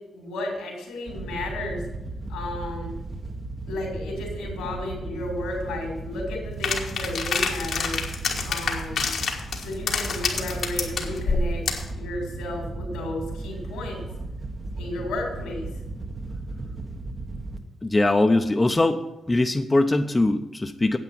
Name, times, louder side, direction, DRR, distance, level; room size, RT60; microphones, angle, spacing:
voice 1, 0.1-1.8 2.3-2.9 3.7-8.0 8.4-9.1 9.6-11.6 11.9-14.0 14.8-15.7, left 1 dB, 85° left, 0 dB, 3.2 m, -33 dB
Wind / Boat Water vehicle, 1.1-17.6, right 2 dB, 45° right, 1.1 m, -36 dB
sound 1, 6.6-11.9, left 4 dB, 70° left, 1.5 m, -27 dB
voice 2, 17.8-19.0 19.3-21.0, left 2 dB, 25° left, 6 dB, 0.7 m, -21 dB
9.4 x 8.1 x 5.9 m, 0.98 s
hypercardioid pair, 45°, 0 cm